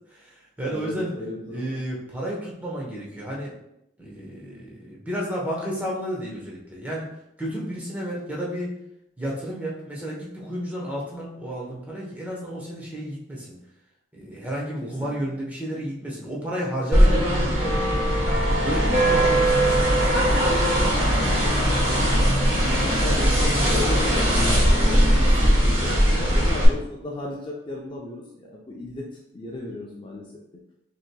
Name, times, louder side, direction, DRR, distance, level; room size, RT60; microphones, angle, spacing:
voice 1, 0.1-1.1 1.5-3.5 4.0-7.1 7.4-8.7 9.2-13.5 14.1-20.0 26.1-26.3, right 1 dB, 10° right, -4 dB, 0.9 m, -32 dB
voice 2, 0.6-1.8 14.8-15.1 19.1-19.5 20.2-22.1 22.5-26.0 26.3-29.1 29.3-30.3, left 1 dB, 25° left, -2 dB, 0.5 m, -35 dB
sound 1, 16.9-26.6, equal, 35° right, 1.4 m, -20 dB
5.9 x 2.9 x 2.2 m, 0.83 s
head